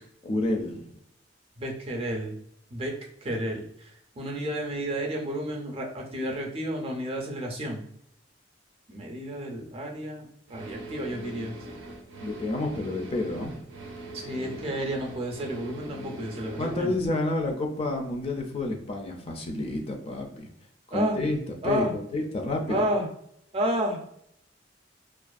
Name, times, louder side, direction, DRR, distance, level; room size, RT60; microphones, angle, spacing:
voice 1, 0.2-0.9 12.2-13.5 16.6-20.5 20.9-21.4 21.6-22.9, left 2 dB, 35° left, 3 dB, 0.4 m, -29 dB
voice 2, 1.6-2.3 2.7-2.9 3.2-3.6 4.2-7.8 8.9-11.8 14.1-16.9 20.9-21.2 21.6-21.9 22.7-23.0 23.5-24.0, right 1 dB, 30° right, 0 dB, 0.5 m, -31 dB
sound 1, 10.5-16.8, right 1 dB, 85° right, 0.5 m, -41 dB
2.4 x 2.3 x 2.3 m, 0.72 s
head